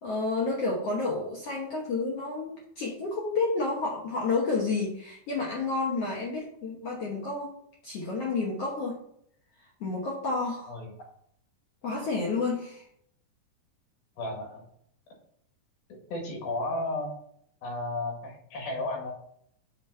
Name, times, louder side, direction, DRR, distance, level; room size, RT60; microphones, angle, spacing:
voice 1, 0.0-7.5 7.8-8.9 9.8-10.8 11.8-12.8, left 3 dB, 60° left, -3 dB, 1.6 m, -30 dB
voice 2, 14.2-14.7 16.1-17.1 17.6-19.1, left 2 dB, 80° left, 1 dB, 3.7 m, -33 dB
7.5 x 4.2 x 5.4 m, 0.69 s
omnidirectional pair, 4.1 m